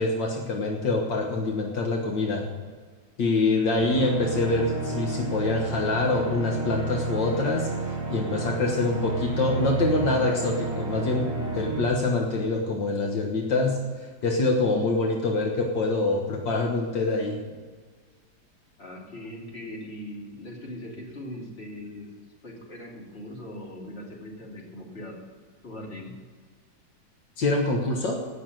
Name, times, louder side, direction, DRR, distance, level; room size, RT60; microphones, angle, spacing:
voice 1, 0.0-2.5 3.2-17.4 27.4-28.3, left 3 dB, 70° left, 1 dB, 2.0 m, -25 dB
sound 1, 3.8-11.8, right 3 dB, 45° right, 3.0 m, -31 dB
voice 2, 18.8-25.2 25.6-26.1, left 1 dB, 30° left, -2 dB, 3.1 m, -40 dB
16.5 x 6.8 x 7.8 m, 1.5 s
omnidirectional pair, 2.1 m